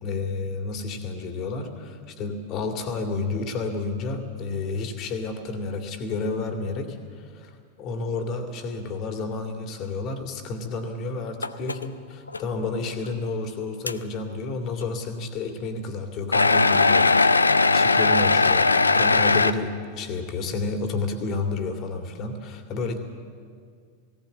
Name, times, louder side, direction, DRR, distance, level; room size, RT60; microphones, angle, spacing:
voice 1, 0.0-23.0, left 3 dB, 35° left, 5 dB, 2.3 m, -31 dB
sound 1, 11.4-11.8 12.3-12.4 13.0-13.1 13.9-14.0 16.3-19.5, left 3 dB, 80° left, 0.6 m, -19 dB
18.0 x 17.5 x 8.5 m, 2.1 s
figure-of-eight pair, 90°, 0 cm